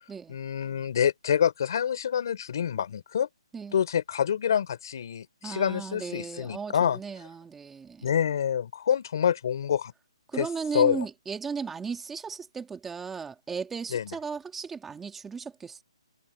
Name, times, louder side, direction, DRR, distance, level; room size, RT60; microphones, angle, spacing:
voice 1, 0.3-3.3 3.7-7.0 8.0-9.9 10.4-10.5 10.7-11.1 13.9-14.1, left 8 dB, 40° left, 4.0 m, -27 dB
voice 2, 5.4-8.1 10.3-15.8, right 5 dB, 5° right, 2.2 m, -36 dB
hypercardioid pair, 175°, 3 cm